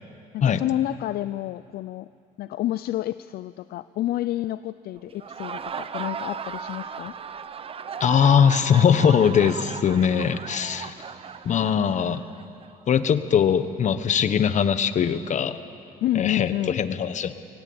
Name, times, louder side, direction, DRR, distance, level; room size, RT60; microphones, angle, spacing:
voice 1, 0.3-2.1 2.4-7.1 16.0-16.8, left 14 dB, 65° left, 14 dB, 0.5 m, -29 dB
Laughter, 5.1-12.7, right 6 dB, 35° right, 0.8 m, -36 dB
voice 2, 8.0-10.9 11.4-12.2 12.9-15.6 16.1-17.3, left 7 dB, 45° left, 12 dB, 1.2 m, -21 dB
23.5 x 18.0 x 8.8 m, 2.6 s
cardioid pair, 110°, 17 cm